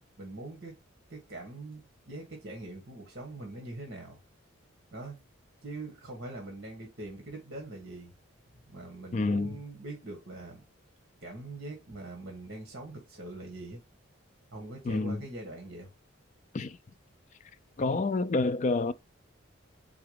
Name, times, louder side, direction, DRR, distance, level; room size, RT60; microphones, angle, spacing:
voice 1, 0.2-0.8 1.1-4.2 4.9-5.2 5.6-8.1 8.7-10.6 11.2-13.8 14.5-15.9, right 2 dB, 50° right, 1.5 m, -42 dB
voice 2, 9.1-9.6 14.9-15.2 16.5-16.8 17.8-18.9, left 3 dB, 35° left, 0.3 m, -28 dB
4.8 x 3.9 x 5.0 m
head